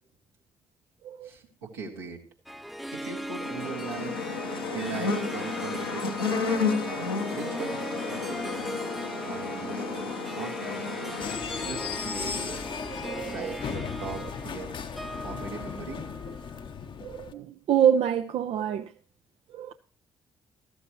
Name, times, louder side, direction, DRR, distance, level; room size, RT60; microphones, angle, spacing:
voice 1, 1.2-2.2 2.9-4.2 4.7-6.7 7.3-8.6 9.2-11.2 11.6-12.6 13.3-14.7 15.2-16.0, right 5 dB, 80° right, 2.1 m, -39 dB
Harp, 2.5-16.9, equal, ahead, 0.5 m, -39 dB
sound 1, 3.4-11.4, left 4 dB, 85° left, 1.2 m, -32 dB
sound 2, 11.2-17.3, left 6 dB, 45° left, 0.8 m, -36 dB
voice 2, 12.9-13.6 17.0-18.9 19.5-19.7, right 9 dB, 55° right, 0.6 m, -27 dB
14.0 x 13.0 x 3.0 m
figure-of-eight pair, 45°, 12 cm